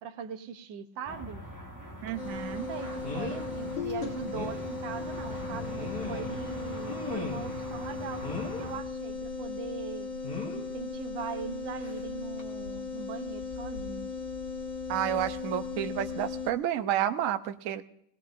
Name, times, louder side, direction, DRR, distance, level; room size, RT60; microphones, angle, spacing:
voice 1, 0.0-1.4 2.7-8.3 8.6-10.1 10.5-14.1, right 7 dB, 70° right, 9 dB, 1.5 m, -40 dB
sound 1, 1.0-8.8, equal, 10° left, 0.9 m, -42 dB
voice 2, 2.0-2.7 14.9-17.8, right 10 dB, 85° right, 9 dB, 0.7 m, -30 dB
sound 2, 2.1-2.2 3.0-3.5 3.9-4.0 4.3-4.6 5.5-6.4 6.9-7.6 8.2-8.7 10.2-10.7 11.8-12.0 12.4-12.5, left 3 dB, 45° left, 2.9 m, -38 dB
sound 3, 2.2-16.5, left 4 dB, 65° left, 2.0 m, -37 dB
19.0 x 18.5 x 2.5 m, 0.75 s
omnidirectional pair, 2.3 m